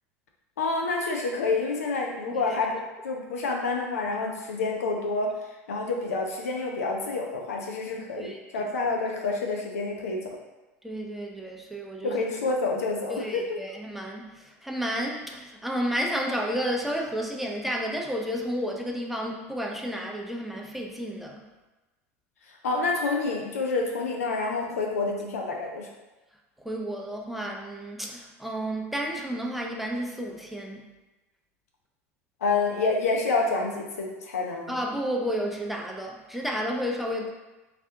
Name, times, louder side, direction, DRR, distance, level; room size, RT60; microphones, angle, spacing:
voice 1, 0.6-5.3 5.7-10.3 12.0-13.6 22.6-25.9 32.4-34.7, left 3 dB, 85° left, 1 dB, 0.5 m, -28 dB
voice 2, 2.3-2.6 8.2-8.7 10.8-12.2 13.1-21.5 26.6-30.9 34.7-37.3, equal, ahead, 0 dB, 0.4 m, -31 dB
3.3 x 2.4 x 2.8 m, 1.1 s
hypercardioid pair, 85°, 8 cm